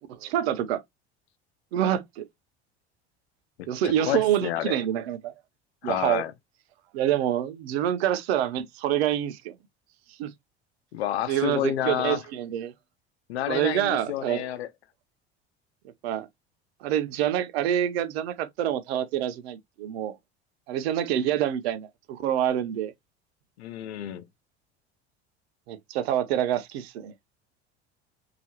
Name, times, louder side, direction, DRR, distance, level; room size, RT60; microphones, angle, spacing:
voice 1, 0.2-0.8 1.7-2.2 3.7-5.3 5.8-6.2 6.9-9.5 10.2-10.3 11.3-12.7 13.5-14.4 16.0-16.3 16.8-20.2 20.7-22.9 25.7-27.1, right 11 dB, 70° right, 0.9 m, -26 dB
voice 2, 3.8-4.7 5.8-6.3 10.9-12.2 13.3-14.7 23.6-24.2, left 12 dB, 75° left, 0.9 m, -29 dB
5.5 x 3.0 x 2.9 m
figure-of-eight pair, 70°, 33 cm